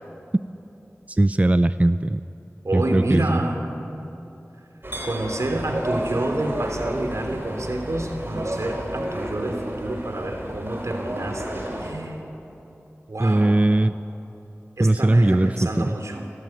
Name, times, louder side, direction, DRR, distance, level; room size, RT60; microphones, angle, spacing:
voice 1, 1.1-2.2 2.7-3.4 13.2-13.9 14.8-15.9, right 1 dB, 30° right, 12 dB, 0.5 m, -19 dB
voice 2, 2.6-3.6 5.0-12.2 13.1-13.6 14.8-16.2, right 1 dB, 80° right, 4 dB, 3.1 m, -28 dB
sound 1, 4.8-11.9, right 1 dB, 45° right, 5.9 m, -31 dB
29.5 x 13.5 x 9.3 m, 2.8 s
wide cardioid pair, 45°, 5 cm